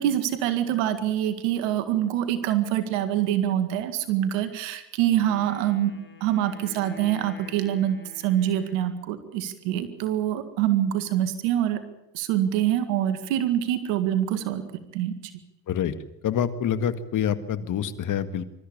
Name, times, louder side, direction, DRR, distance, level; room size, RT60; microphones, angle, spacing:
voice 1, 0.0-5.9 6.2-11.8 12.1-14.7 14.9-15.1, right 11 dB, 90° right, 10 dB, 2.0 m, -25 dB
Wind instrument woodwind instrument, 5.2-9.2, left 3 dB, 30° left, 5.3 m, -48 dB
voice 2, 16.2-18.5, left 9 dB, 55° left, 12 dB, 1.9 m, -26 dB
24.0 x 13.5 x 8.7 m, 0.92 s
supercardioid pair, 75°, 37 cm